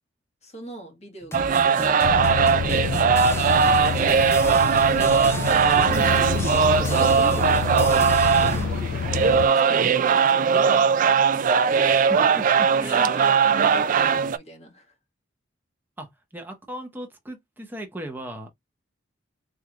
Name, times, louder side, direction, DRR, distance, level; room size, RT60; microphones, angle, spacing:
voice 1, 0.4-2.1 2.9-4.1 6.6-10.8 12.8-15.0, right 1 dB, 35° left, 1.5 m, -42 dB
sound 1, 1.2-8.7, left 2 dB, 15° left, 0.6 m, -36 dB
sound 2, 1.3-14.4, right 6 dB, 40° right, 0.3 m, -20 dB
sound 3, 2.0-9.5, left 6 dB, 70° left, 0.3 m, -28 dB
voice 2, 5.9-6.3 6.9-7.0 11.8-13.1 13.4-13.5 16.0-18.5, right 1 dB, 10° right, 1.0 m, -37 dB
3.8 x 3.3 x 2.4 m
head